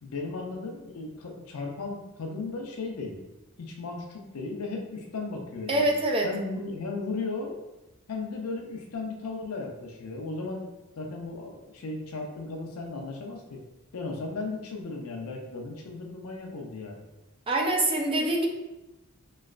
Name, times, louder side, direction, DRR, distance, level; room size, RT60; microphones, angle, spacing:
voice 1, 0.0-3.2 3.6-5.9 6.2-7.6 8.1-10.7 11.0-13.6 13.9-17.0, left 3 dB, 85° left, 1 dB, 0.5 m, -36 dB
voice 2, 5.7-6.3 17.5-18.5, right 1 dB, 25° right, 0 dB, 0.4 m, -24 dB
3.1 x 3.1 x 2.4 m, 1.0 s
head